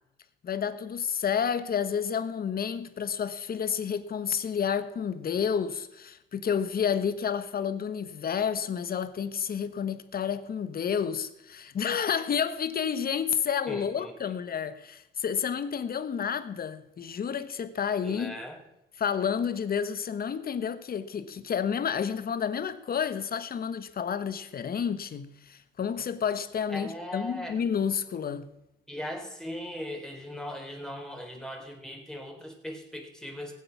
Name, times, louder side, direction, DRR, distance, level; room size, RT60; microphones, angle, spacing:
voice 1, 0.4-18.4 19.0-28.5, left 7 dB, 50° left, 1.2 m, -30 dB
voice 2, 13.7-14.1 18.0-18.6 26.7-27.6 28.9-33.5, equal, 5° left, 3.9 m, -39 dB
19.0 x 8.3 x 6.0 m
cardioid pair, 90°, 20 cm